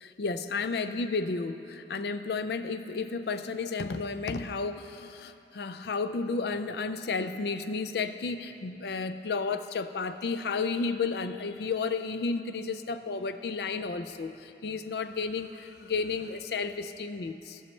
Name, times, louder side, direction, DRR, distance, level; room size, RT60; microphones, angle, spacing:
voice 1, 0.0-17.6, left 4 dB, 70° left, 10 dB, 0.4 m, -32 dB
17.0 x 6.3 x 3.2 m, 2.8 s
head